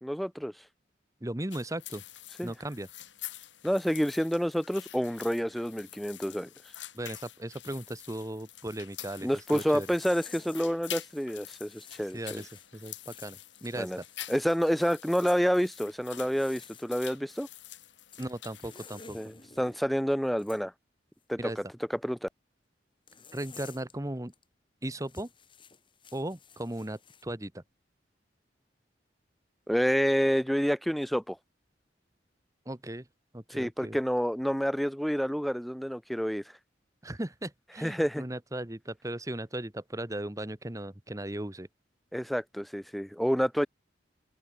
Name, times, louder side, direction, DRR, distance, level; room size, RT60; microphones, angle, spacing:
voice 1, 0.0-0.5 2.4-2.5 3.6-6.5 9.2-12.4 13.8-14.0 14.3-17.5 19.1-20.7 21.3-21.4 22.0-22.3 29.7-31.4 33.5-36.4 37.8-38.2 42.1-43.7, equal, ahead, 0.4 m, -28 dB
voice 2, 1.2-2.0 2.4-2.9 6.9-9.9 12.1-14.0 18.2-19.2 21.4-21.6 23.3-24.3 24.8-25.3 26.1-27.6 32.6-33.1 33.3-34.0 37.0-41.7, right 1 dB, 20° right, 1.2 m, -37 dB
sound 1, 1.5-19.0, left 13 dB, 85° left, 3.6 m, -47 dB
sound 2, 9.8-10.7 11.0-15.0 16.1-16.9 18.1-19.8 20.4-20.6 23.1-23.9 24.3-24.4 25.0-27.2, left 6 dB, 25° left, 3.6 m, -53 dB
head